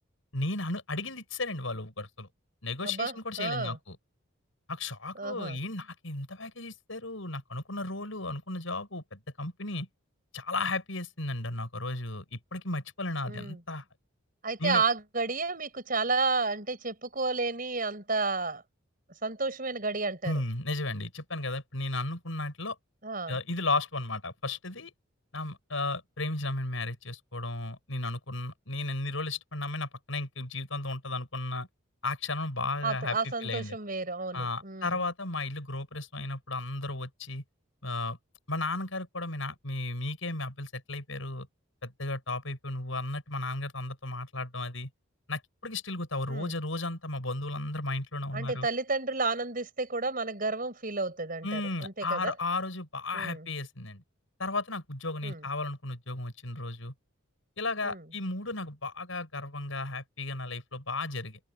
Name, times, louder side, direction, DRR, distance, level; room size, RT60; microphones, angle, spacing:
voice 1, 0.3-2.3 2.6-4.0 4.7-9.9 10.3-13.8 14.6-14.8 20.2-22.8 23.3-24.9 25.3-31.7 32.0-33.8 34.3-37.4 37.8-38.2 38.5-41.5 41.8-44.9 45.3-48.7 51.4-54.0 54.4-56.9 57.6-61.4, left 2 dB, 75° left, 6.3 m, -34 dB
voice 2, 2.8-3.8 5.1-5.6 13.2-13.6 14.4-18.6 19.2-20.4 23.0-23.4 32.8-35.0 46.3-46.5 48.3-52.3 53.1-53.5 55.2-55.5 57.8-58.0, right 3 dB, 45° right, 6.0 m, -31 dB
open air
head